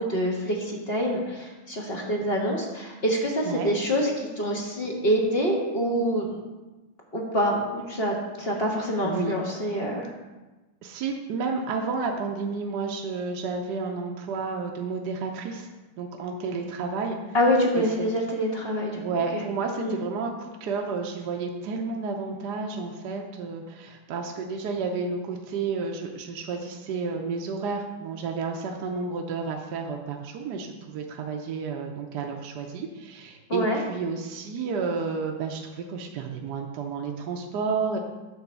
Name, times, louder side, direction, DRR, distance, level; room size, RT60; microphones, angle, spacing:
voice 1, 0.0-6.2 7.1-10.1 17.3-19.0 19.3-19.4 19.8-20.0 33.5-33.8, equal, 35° left, -2 dB, 1.4 m, -26 dB
voice 2, 9.0-9.3 10.8-15.7 16.0-17.4 17.8-18.1 18.9-38.0, right 4 dB, 65° right, 1 dB, 1.3 m, -31 dB
9.5 x 3.9 x 6.8 m, 1.1 s
omnidirectional pair, 2.0 m